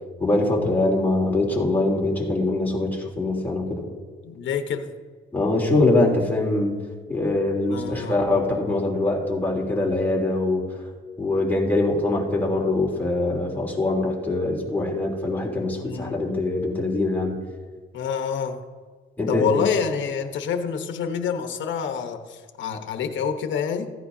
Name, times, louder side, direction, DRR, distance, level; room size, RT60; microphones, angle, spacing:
voice 1, 0.2-3.9 5.3-6.8 7.1-10.6 11.2-17.4 19.2-19.7, left 2 dB, 10° left, -3 dB, 3.3 m, -23 dB
voice 2, 4.2-4.9 7.7-8.2 15.8-16.2 17.9-18.6 19.3-23.9, left 7 dB, 70° left, 6 dB, 1.1 m, -27 dB
15.5 x 10.0 x 2.8 m, 1.5 s
cardioid pair, 90°, 20 cm